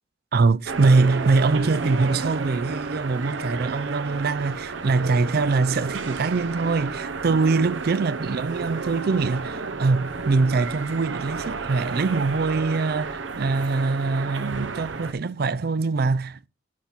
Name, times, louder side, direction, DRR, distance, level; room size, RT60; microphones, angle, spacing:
voice 1, 0.3-16.5, right 4 dB, 50° right, 0.4 m, -23 dB
sound 1, 0.7-15.1, right 4 dB, 75° right, 0.9 m, -32 dB
10.5 x 6.0 x 4.4 m
head